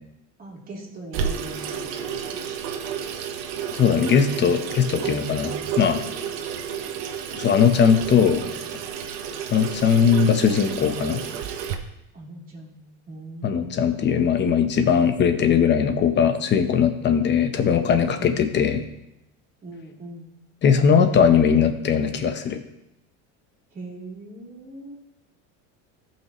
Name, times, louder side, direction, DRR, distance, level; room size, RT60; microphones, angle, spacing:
voice 1, 0.4-2.3 8.4-8.6 12.1-12.8 13.1-14.6 18.2-18.4 19.6-20.3 23.7-25.0, right 2 dB, 25° right, -4 dB, 2.9 m, -41 dB
Water tap faucet / Sink (filling or washing), 1.1-11.7, right 7 dB, 85° right, 1.1 m, -31 dB
voice 2, 3.7-6.0 7.4-8.4 9.5-11.2 13.4-18.8 20.6-22.6, left 7 dB, 30° left, 7 dB, 0.9 m, -19 dB
17.0 x 5.8 x 3.0 m, 0.86 s
cardioid pair, 150°, 35 cm